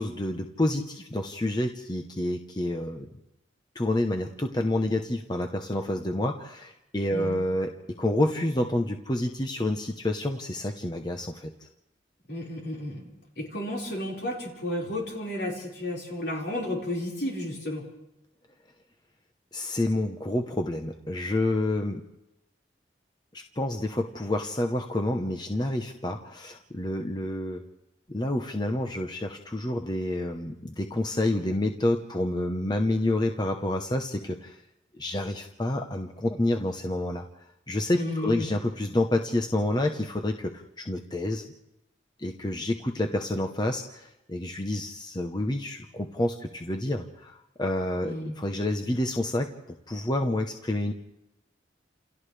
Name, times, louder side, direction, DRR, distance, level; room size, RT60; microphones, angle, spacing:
voice 1, 0.0-3.1 3.7-11.7 19.5-22.0 23.3-27.6 28.1-34.6 34.9-37.3 37.7-41.4 42.2-49.5 49.9-50.9, left 1 dB, 25° left, 3 dB, 0.9 m, -28 dB
voice 2, 12.3-13.1 13.4-17.8 37.9-38.5 48.0-48.3, left 1 dB, 65° left, -3 dB, 5.0 m, -32 dB
29.0 x 28.5 x 3.4 m, 0.92 s
head